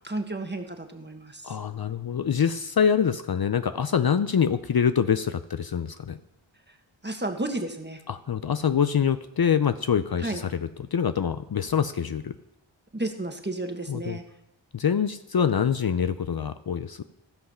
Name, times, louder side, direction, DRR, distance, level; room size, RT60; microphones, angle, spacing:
voice 1, 0.0-1.6 6.7-6.8 7.0-8.0 10.2-10.4 12.9-14.2, right 2 dB, 20° right, 5 dB, 1.5 m, -32 dB
voice 2, 1.4-6.2 8.1-10.5 10.9-12.4 13.9-14.2 14.7-17.0, left 7 dB, 50° left, 11 dB, 0.6 m, -25 dB
15.5 x 5.7 x 5.6 m, 0.84 s
wide cardioid pair, 40°, 48 cm